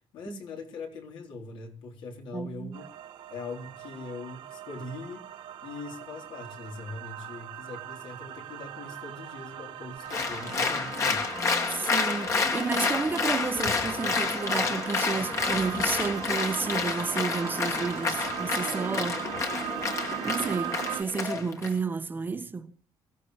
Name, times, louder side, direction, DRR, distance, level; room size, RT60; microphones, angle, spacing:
voice 1, 0.1-2.8 3.3-5.2 5.6-11.4, left 3 dB, 70° left, 3.8 m, -41 dB
voice 2, 2.3-2.8 11.7-19.3 20.2-22.7, right 4 dB, 25° right, 1.2 m, -31 dB
sound 1, 2.7-21.0, right 10 dB, 85° right, 1.7 m, -39 dB
Applause, 10.1-21.7, left 4 dB, 35° left, 2.1 m, -29 dB
23.5 x 15.5 x 3.2 m
cardioid pair, 155°, 9 cm